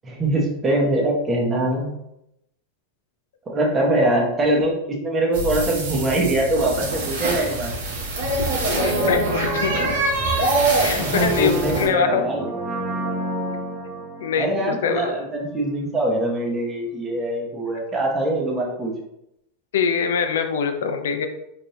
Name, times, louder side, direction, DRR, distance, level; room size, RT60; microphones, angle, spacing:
voice 1, 0.0-1.9 3.5-7.7 11.0-12.5 14.4-18.9, right 1 dB, 25° right, -1 dB, 1.2 m, -23 dB
sound 1, 5.3-11.9, right 2 dB, 85° right, 1.4 m, -24 dB
Brass instrument, 8.6-15.5 15.8-15.9, right 1 dB, 45° right, 1.1 m, -30 dB
voice 2, 8.7-9.9 10.8-12.3 14.2-15.1 19.7-21.3, left 6 dB, 85° left, 7 dB, 0.6 m, -24 dB
4.2 x 3.4 x 2.8 m, 0.83 s
hypercardioid pair, 115°, 0 cm